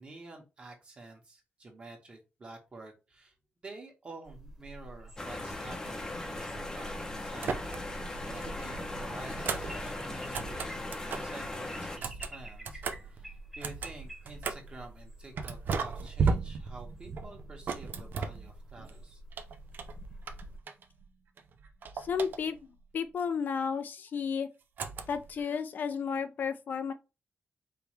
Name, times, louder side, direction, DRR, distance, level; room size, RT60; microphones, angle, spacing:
voice 1, 0.0-3.3 3.6-7.6 7.9-10.9 11.2-12.8 13.1-13.3 13.5-19.2, right 2 dB, 30° right, 1.6 m, -49 dB
sound 1, 4.3-20.6, right 1 dB, 5° right, 1.4 m, -48 dB
sound 2, 5.2-12.0, left 2 dB, 15° left, 0.8 m, -39 dB
sound 3, 7.4-8.1 8.4-11.4 11.9-14.8 15.4-18.9 19.3-21.1 21.4-22.8 24.8-25.4, right 5 dB, 60° right, 0.5 m, -36 dB
voice 2, 21.9-22.6 22.9-24.5 25.1-26.9, left 6 dB, 55° left, 0.5 m, -32 dB
5.0 x 3.2 x 3.1 m
wide cardioid pair, 155°, 4 cm